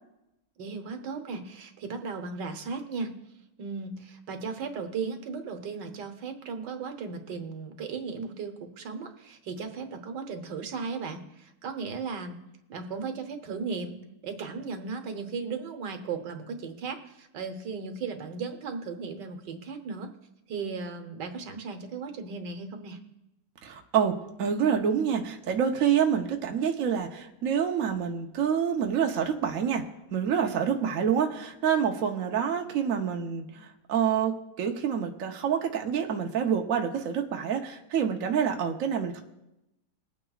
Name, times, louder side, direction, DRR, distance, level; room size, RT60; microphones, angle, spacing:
voice 1, 0.6-3.2 3.6-12.4 12.7-14.0 14.2-20.1 20.5-23.0 30.7-30.9, right 5 dB, 80° right, 6 dB, 1.7 m, -36 dB
voice 2, 23.6-29.8 30.1-39.2, right 7 dB, 55° right, 3 dB, 1.2 m, -27 dB
22.0 x 8.9 x 2.4 m, 0.90 s
omnidirectional pair, 1.9 m